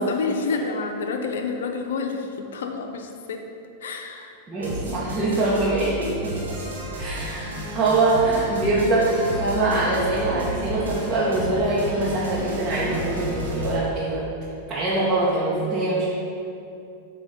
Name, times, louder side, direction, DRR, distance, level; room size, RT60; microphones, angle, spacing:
voice 1, 0.0-3.5 3.8-4.3 8.2-8.5, left 4 dB, 70° left, 4 dB, 0.6 m, -29 dB
voice 2, 4.5-6.6 7.0-14.2 14.7-16.2, right 2 dB, 25° right, -9 dB, 1.5 m, -23 dB
sound 1, 4.6-13.8, left 1 dB, 85° right, 1.5 m, -32 dB
8.4 x 3.0 x 5.1 m, 2.6 s
hypercardioid pair, 95°, 0 cm